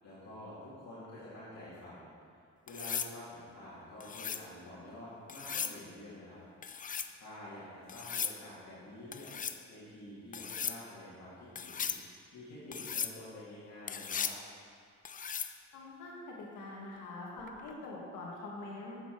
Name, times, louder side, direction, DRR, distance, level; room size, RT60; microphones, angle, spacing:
voice 1, 0.0-2.1 2.7-6.4 6.7-9.3 9.7-14.3, left 1 dB, 60° left, -9 dB, 2.2 m, -49 dB
sound 1, 2.7-3.1 4.0-4.5 5.3-5.8 6.6-7.1 7.9-8.4 9.1-9.6 10.3-10.8 11.6-12.0 12.7-13.1 13.9-14.4 15.0-15.5 17.5-17.7, left 7 dB, 30° left, 0.4 m, -37 dB
voice 2, 15.7-19.0, left 2 dB, 85° left, -3 dB, 1.7 m, -44 dB
7.6 x 6.9 x 4.5 m, 2.3 s
cardioid pair, 90°, 30 cm